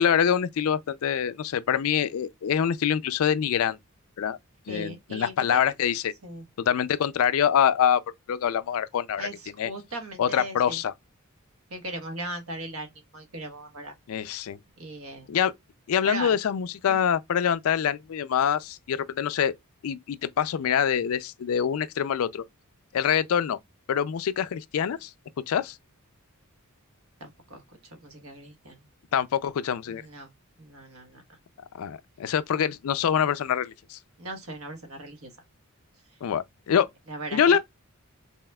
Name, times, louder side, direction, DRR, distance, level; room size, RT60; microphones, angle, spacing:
voice 1, 0.0-3.8 4.2-4.4 4.7-6.1 6.6-8.0 8.3-9.3 9.6-9.7 10.2-10.9 14.1-14.6 15.3-15.5 15.9-19.5 19.8-22.4 22.9-23.6 23.9-25.1 25.5-25.8 29.1-30.0 31.8-34.0 36.2-36.9 37.3-37.6, left 8 dB, 70° left, 0.3 m, -25 dB
voice 2, 4.7-5.6 6.2-6.4 9.2-10.8 11.7-13.9 14.8-15.3 16.0-16.4 16.9-17.0 27.2-28.8 29.9-30.3 30.6-31.2 34.2-35.3 37.1-37.6, right 2 dB, 70° right, 1.1 m, -38 dB
5.5 x 2.3 x 2.2 m
head